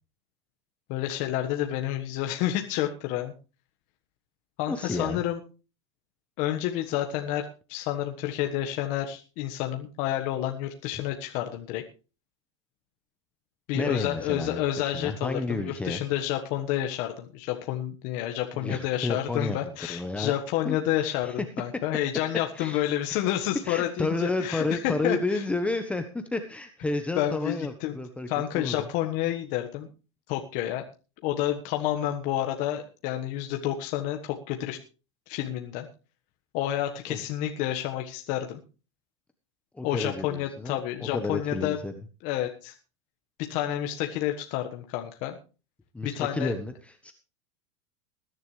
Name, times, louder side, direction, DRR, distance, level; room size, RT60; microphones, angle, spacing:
voice 1, 0.9-3.3 4.6-5.4 6.4-11.8 13.7-25.4 27.1-28.0 28.3-29.9 30.3-30.8 31.2-34.8 35.3-35.9 36.5-38.6 39.8-41.8 42.2-42.7 43.4-45.4 46.0-46.5, left 12 dB, 55° left, 4 dB, 1.4 m, -29 dB
voice 2, 4.7-5.2 13.7-16.0 18.5-20.3 20.6-21.4 22.5-22.8 23.1-23.2 23.6-28.3 28.5-28.8 37.1-37.2 39.7-41.9 45.9-47.1, left 2 dB, 10° left, 7 dB, 1.1 m, -31 dB
20.5 x 11.0 x 3.3 m, 0.34 s
hypercardioid pair, 115°, 16 cm